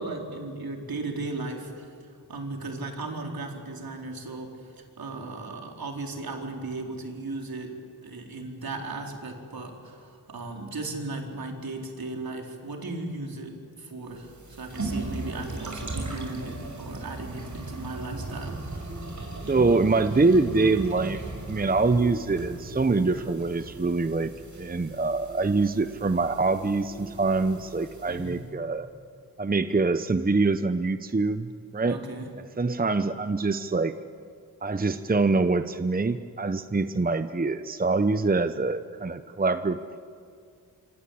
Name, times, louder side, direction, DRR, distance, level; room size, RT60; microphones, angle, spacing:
voice 1, 0.0-1.9 2.3-18.6 28.1-28.5 31.8-32.3, right 2 dB, 70° right, 2 dB, 4.3 m, -36 dB
sound 1, 14.1-28.4, right 2 dB, 50° right, 5.9 m, -37 dB
voice 2, 19.5-21.2 21.5-24.3 24.6-28.9 29.4-32.0 32.6-33.9 34.6-40.0, right 3 dB, 25° right, 10 dB, 0.9 m, -24 dB
26.0 x 25.5 x 8.7 m, 2.3 s
wide cardioid pair, 70°, 37 cm